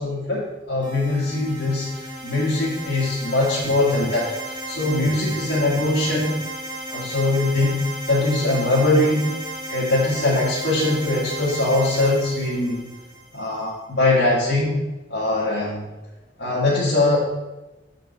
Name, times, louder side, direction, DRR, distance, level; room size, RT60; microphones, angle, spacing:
voice 1, 0.0-6.3 6.9-9.3 9.7-12.8 13.3-14.8 15.1-15.8 16.4-17.2, left 2 dB, 75° left, -8 dB, 1.9 m, -22 dB
sound 1, 0.8-13.5, right 1 dB, 25° right, 2.5 m, -34 dB
6.9 x 5.2 x 6.6 m, 1.1 s
head